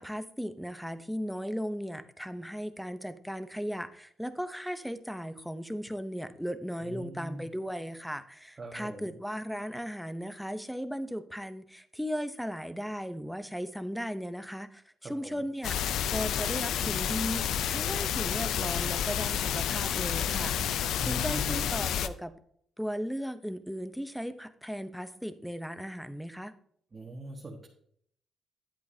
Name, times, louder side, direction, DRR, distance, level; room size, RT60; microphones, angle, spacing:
voice 1, 0.0-22.3 22.8-26.5, equal, ahead, 11 dB, 0.8 m, -37 dB
voice 2, 6.8-7.5 8.6-9.1 15.0-15.4 21.0-21.7 26.9-27.7, right 1 dB, 30° right, -1 dB, 1.6 m, -41 dB
sound 1, 15.6-22.1, left 9 dB, 80° left, 0.5 m, -30 dB
10.5 x 8.3 x 2.8 m, 0.64 s
cardioid pair, 90°, 0 cm